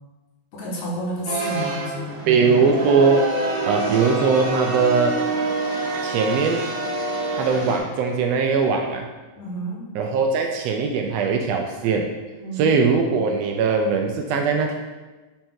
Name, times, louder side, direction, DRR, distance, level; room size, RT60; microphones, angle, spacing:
voice 1, 0.5-2.3 9.4-9.8 12.4-12.7, equal, 70° left, -4 dB, 2.6 m, -30 dB
sound 1, 1.3-7.8, right 3 dB, 60° right, 2.0 m, -27 dB
voice 2, 2.3-3.2 3.6-5.2 6.0-6.6 7.3-9.1 9.9-12.1 12.6-14.7, right 5 dB, 80° right, 3 dB, 1.5 m, -20 dB
5.8 x 5.5 x 3.6 m, 1.2 s
omnidirectional pair, 3.4 m